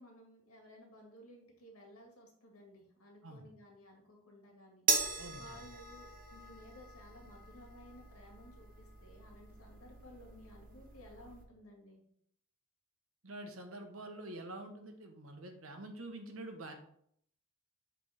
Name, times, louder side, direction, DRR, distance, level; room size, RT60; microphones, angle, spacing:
voice 1, 0.0-4.9 5.3-12.0, equal, 90° left, 1 dB, 2.0 m, -56 dB
sound 1, 4.9-11.4, right 4 dB, 40° right, 1.0 m, -39 dB
voice 2, 5.2-5.6 13.2-16.7, right 1 dB, 70° right, 5 dB, 1.1 m, -47 dB
6.9 x 3.5 x 5.0 m, 0.68 s
head